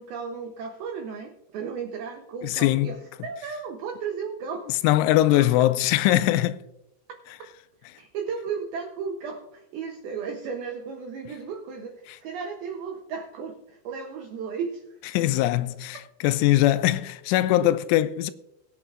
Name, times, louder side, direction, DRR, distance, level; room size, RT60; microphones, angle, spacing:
voice 1, 0.0-4.7 5.3-5.7 7.4-7.5 7.9-14.8, right 6 dB, 80° right, 2.1 m, -35 dB
voice 2, 2.4-2.9 4.7-6.6 12.1-12.2 15.1-18.3, left 15 dB, 85° left, 3.0 m, -21 dB
21.5 x 8.9 x 2.5 m
omnidirectional pair, 5.5 m